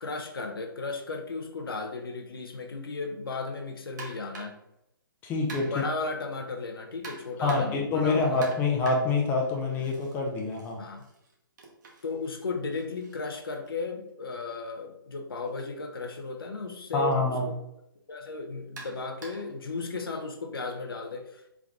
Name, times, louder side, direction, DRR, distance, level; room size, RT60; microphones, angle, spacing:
voice 1, 0.0-4.6 5.6-8.4 10.8-11.0 12.0-17.6 18.1-21.5, left 4 dB, 75° left, 4 dB, 0.7 m, -35 dB
sound 1, 4.0-4.7 5.5-6.0 7.0-7.9 8.4-10.2 10.5-14.4 15.4-15.6 16.1-16.2 17.1-17.2 18.8-19.6, right 3 dB, 50° right, 1.1 m, -46 dB
voice 2, 5.2-5.8 7.4-10.8 16.9-17.5, left 3 dB, 15° left, 0 dB, 0.5 m, -26 dB
3.6 x 3.5 x 2.4 m, 0.81 s
figure-of-eight pair, 135°, 12 cm